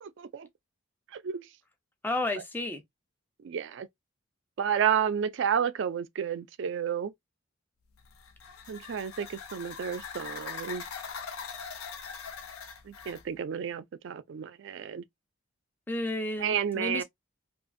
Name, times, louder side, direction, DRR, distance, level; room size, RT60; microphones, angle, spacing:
voice 1, 0.0-0.5 1.1-1.4 3.4-3.9 4.6-7.1 8.7-10.8 12.9-15.0 16.4-17.0, right 8 dB, 60° right, 0.3 m, -31 dB
voice 2, 2.0-2.8 15.9-17.0, left 2 dB, 10° left, 0.4 m, -32 dB
sound 1, 8.0-13.3, left 6 dB, 90° left, 0.5 m, -42 dB
2.4 x 2.4 x 2.5 m
head